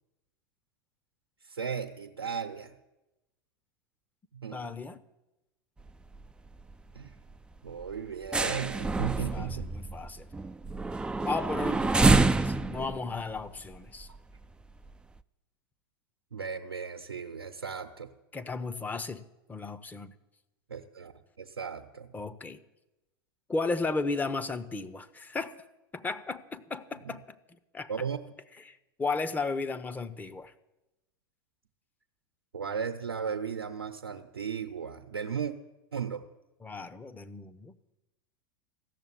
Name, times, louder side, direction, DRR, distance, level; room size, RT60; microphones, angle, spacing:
voice 1, 1.4-2.7 4.3-4.8 6.9-7.2 7.6-9.9 16.3-18.1 20.7-21.1 21.4-22.1 27.0-27.2 27.9-28.2 32.5-35.5 35.9-36.2, right 7 dB, 80° right, 0.9 m, -36 dB
voice 2, 4.5-5.0 9.1-10.3 11.2-14.1 18.3-19.2 19.5-20.1 22.1-22.6 23.5-25.5 25.9-27.4 27.7-27.9 28.7-30.5 36.6-37.8, left 3 dB, 15° left, 0.8 m, -34 dB
sound 1, 5.8-6.3 6.5-6.7 7.1-7.3 7.7-14.4 14.9-15.0, right 3 dB, 5° right, 0.4 m, -27 dB
15.0 x 7.0 x 9.9 m
figure-of-eight pair, 90°, 12 cm